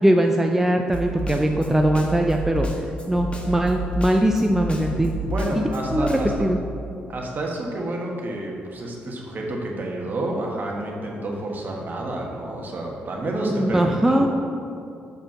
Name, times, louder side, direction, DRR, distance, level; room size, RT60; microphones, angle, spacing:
voice 1, 0.0-2.7 3.1-5.1 5.5-5.6 5.9-6.6 13.4-14.3, right 1 dB, 10° right, 2 dB, 0.6 m, -21 dB
Snare drum, 0.9-6.4, right 1 dB, 30° left, 1.4 m, -30 dB
voice 2, 5.2-6.3 7.1-14.4, right 1 dB, 50° right, 0 dB, 1.5 m, -29 dB
6.8 x 5.1 x 5.7 m, 2.5 s
supercardioid pair, 55°, 4 cm